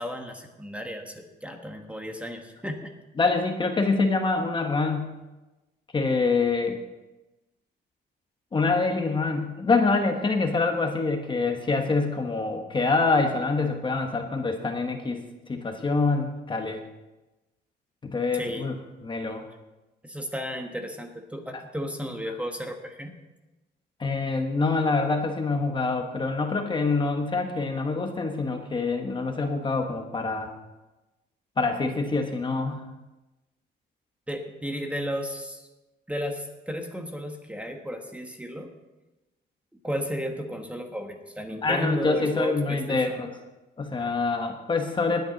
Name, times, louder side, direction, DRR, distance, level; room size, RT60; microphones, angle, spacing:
voice 1, 0.0-2.9 18.3-18.7 20.0-23.2 34.3-35.7 36.1-38.7 39.8-43.2, equal, 5° right, 4 dB, 1.3 m, -33 dB
voice 2, 3.2-5.2 5.9-6.8 8.5-15.2 15.5-16.8 18.0-18.7 19.0-19.4 24.0-30.5 31.6-32.8 41.6-43.4 43.8-45.2, left 3 dB, 25° left, 4 dB, 1.2 m, -25 dB
19.5 x 9.4 x 4.0 m, 1.1 s
cardioid pair, 130°, 19 cm